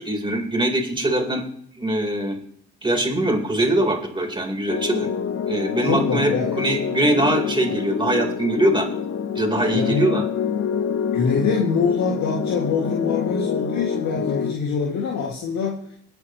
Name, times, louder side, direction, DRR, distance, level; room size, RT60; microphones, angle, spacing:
voice 1, 0.0-1.4 1.8-2.4 2.8-5.1 5.5-6.3 6.6-8.9 9.4-10.2, right 1 dB, 15° right, 2 dB, 4.1 m, -22 dB
sound 1, 4.7-14.5, left 7 dB, 50° left, 1.2 m, -26 dB
voice 2, 5.8-6.6 9.7-10.1 11.1-15.8, left 5 dB, 70° left, -1 dB, 2.4 m, -24 dB
21.5 x 9.1 x 3.2 m, 0.66 s
supercardioid pair, 75°, 30 cm